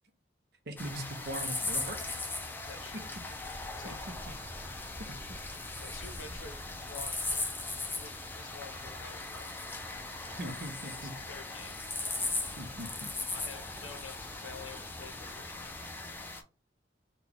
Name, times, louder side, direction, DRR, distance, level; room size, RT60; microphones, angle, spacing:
voice 1, 0.7-2.2 2.9-3.0 3.5-4.2 5.0-5.4 10.4-11.1 12.6-13.1, right 1 dB, 55° right, 7 dB, 0.7 m, -41 dB
sound 1, 0.8-16.4, left 2 dB, 10° left, 0.4 m, -38 dB
sound 2, 1.8-15.4, equal, 10° right, 0.8 m, -53 dB
voice 2, 2.7-3.1 3.8-4.0 5.8-6.6 6.8-7.6 8.0-9.5 10.4-11.8 13.3-15.7, left 5 dB, 90° left, 7 dB, 0.8 m, -49 dB
4.1 x 2.3 x 3.4 m, 0.32 s
head